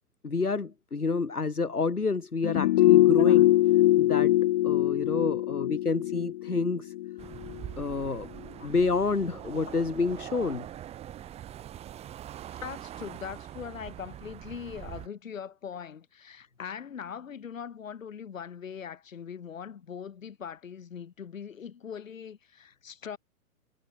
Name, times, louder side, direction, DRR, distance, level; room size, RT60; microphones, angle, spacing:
voice 1, 0.2-3.5 4.0-4.4 4.6-6.9 7.8-8.3 8.6-10.7, left 4 dB, 85° left, 1.8 m, -28 dB
sound 1, 2.4-7.6 7.9-8.0, left 15 dB, 30° left, 0.7 m, -22 dB
sound 2, 7.2-15.1, right 11 dB, 15° right, 1.2 m, -43 dB
voice 2, 12.5-23.2, left 7 dB, 60° left, 6.2 m, -41 dB
figure-of-eight pair, 115°, 44 cm